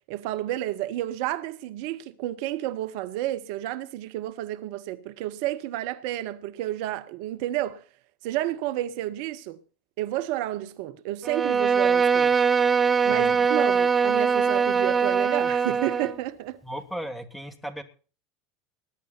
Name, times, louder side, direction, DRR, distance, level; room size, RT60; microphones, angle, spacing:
voice 1, 0.1-7.8 8.2-9.6 10.0-12.4 13.0-16.6, right 14 dB, 65° right, 0.8 m, -31 dB
Bowed string instrument, 11.2-16.2, right 6 dB, 25° right, 1.0 m, -22 dB
voice 2, 16.6-17.8, right 1 dB, 5° left, 2.5 m, -36 dB
20.0 x 10.0 x 4.4 m
hypercardioid pair, 80°, 0 cm